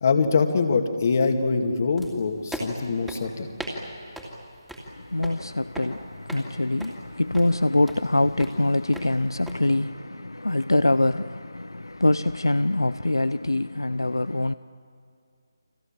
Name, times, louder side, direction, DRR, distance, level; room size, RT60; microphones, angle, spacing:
voice 1, 0.0-3.6, left 4 dB, 40° left, 2.4 m, -23 dB
sound 1, 2.0-9.6, right 1 dB, 5° right, 2.7 m, -39 dB
voice 2, 4.9-14.5, left 2 dB, 80° left, 0.6 m, -24 dB
30.0 x 25.5 x 7.5 m
figure-of-eight pair, 150°, 2 cm